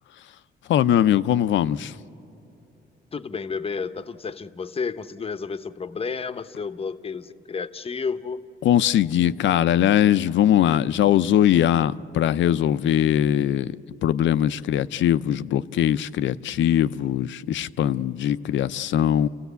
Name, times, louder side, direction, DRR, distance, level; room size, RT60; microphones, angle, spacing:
voice 1, 0.7-1.9 8.6-13.8 14.0-19.3, left 11 dB, 70° left, 0.6 m, -21 dB
voice 2, 3.1-8.4, left 5 dB, 30° left, 0.8 m, -31 dB
29.5 x 16.0 x 8.2 m
cardioid pair, 90°, 20 cm